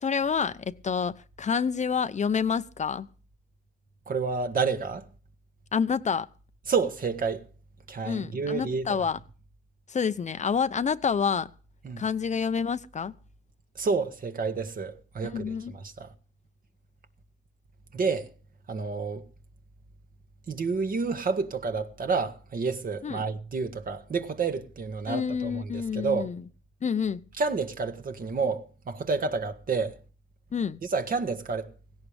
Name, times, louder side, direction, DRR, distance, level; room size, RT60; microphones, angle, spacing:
voice 1, 0.0-3.1 5.7-6.3 8.0-9.2 9.9-11.5 12.0-13.1 15.3-15.7 23.0-23.2 25.1-26.4 26.8-27.2 30.5-30.8, left 6 dB, 35° left, 0.8 m, -28 dB
voice 2, 4.1-5.0 6.7-7.4 7.9-9.0 11.8-12.0 13.8-16.1 17.9-18.3 18.7-19.2 20.5-26.3 27.4-30.0 30.8-31.7, right 4 dB, 45° right, 1.9 m, -29 dB
17.0 x 17.0 x 3.5 m
cardioid pair, 90°, 20 cm